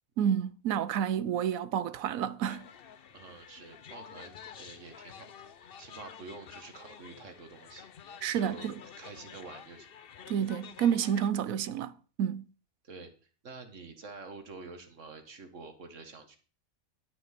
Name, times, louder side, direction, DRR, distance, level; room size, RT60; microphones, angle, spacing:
voice 1, 0.2-2.6 8.2-8.8 10.3-12.4, right 9 dB, 75° right, 1.1 m, -30 dB
sound 1, 2.5-11.3, left 8 dB, 50° left, 0.8 m, -50 dB
voice 2, 3.1-5.3 5.8-7.9 8.4-8.7 9.0-10.0 12.8-16.4, right 3 dB, 60° right, 2.0 m, -48 dB
11.5 x 6.6 x 5.8 m
omnidirectional pair, 1.5 m